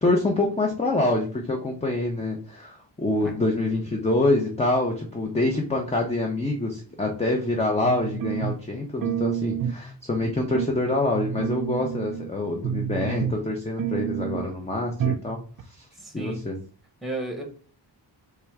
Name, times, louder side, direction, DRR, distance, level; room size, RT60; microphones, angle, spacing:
voice 1, 0.0-15.9 16.1-16.6, left 2 dB, 15° left, 2 dB, 0.5 m, -26 dB
sound 1, 7.8-8.7 9.0-9.9 10.2-10.7 11.1-12.3 12.6-13.5 13.8-14.5 15.0-15.3 15.6-15.7, right 9 dB, 50° right, 0.5 m, -29 dB
voice 2, 15.9-16.4 17.0-17.4, right 2 dB, ahead, 2 dB, 1.1 m, -33 dB
3.4 x 3.3 x 4.6 m, 0.41 s
wide cardioid pair, 175°, 44 cm